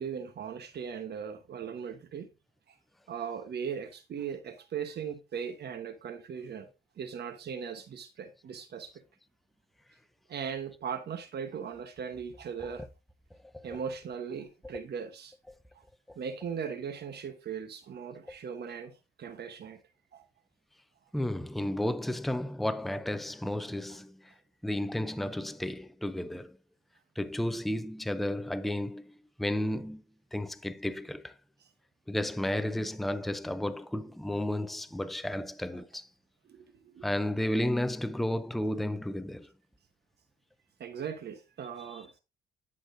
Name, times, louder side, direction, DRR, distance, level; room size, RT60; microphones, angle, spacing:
voice 1, 0.0-2.3 3.1-6.7 7.0-8.9 10.3-12.8 13.6-15.3 16.2-19.8 20.1-20.2 36.5-37.1 40.8-42.1, right 7 dB, 55° right, 1.1 m, -38 dB
voice 2, 16.1-16.5 21.1-24.3 24.6-26.6 27.2-30.0 30.3-31.3 32.1-36.1 37.0-39.5 41.8-42.0, left 1 dB, ahead, 0.5 m, -33 dB
10.5 x 6.1 x 2.6 m
cardioid pair, 90°, 20 cm